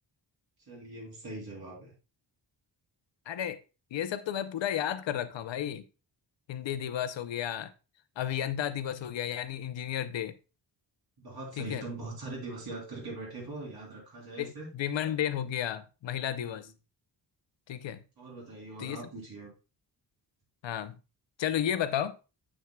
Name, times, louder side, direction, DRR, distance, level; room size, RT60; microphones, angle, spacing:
voice 1, 0.7-1.9 11.2-14.7 16.4-16.6 18.2-19.5, right 2 dB, 55° right, 3.5 m, -41 dB
voice 2, 3.3-3.6 3.9-5.8 6.5-7.7 8.2-10.3 11.6-11.8 14.4-16.7 17.7-18.0 18.8-19.0 20.6-21.0 21.4-22.2, left 10 dB, 80° left, 0.6 m, -32 dB
7.8 x 6.2 x 2.3 m
wide cardioid pair, 175°, 44 cm